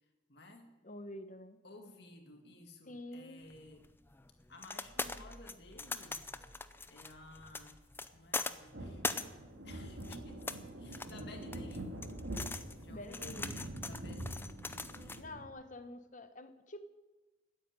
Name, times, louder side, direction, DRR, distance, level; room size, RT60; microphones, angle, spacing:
voice 1, 0.3-0.7 1.6-3.8 4.5-6.2 6.9-7.8 8.1-9.0 9.6-12.1 12.8-15.2, left 2 dB, 55° left, 4 dB, 2.0 m, -55 dB
voice 2, 0.8-1.6 2.9-3.5 12.9-13.5 15.2-16.8, left 1 dB, 40° left, 10 dB, 1.0 m, -47 dB
sound 1, 3.5-15.2, left 3 dB, 10° left, 0.5 m, -42 dB
sound 2, 8.7-15.5, right 1 dB, 80° right, 2.2 m, -44 dB
13.5 x 9.2 x 9.7 m, 1.2 s
head